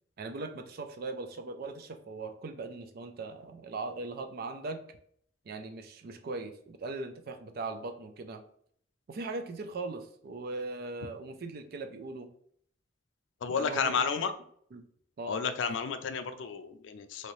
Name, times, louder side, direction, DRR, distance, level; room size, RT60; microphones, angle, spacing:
voice 1, 0.2-4.8 5.5-8.4 9.1-12.3 13.5-14.0 14.7-14.8 15.2-15.4, right 3 dB, 55° right, 7 dB, 0.4 m, -39 dB
voice 2, 13.4-14.3 15.3-17.3, left 5 dB, 75° left, 8 dB, 0.4 m, -31 dB
3.0 x 2.8 x 3.0 m, 0.64 s
head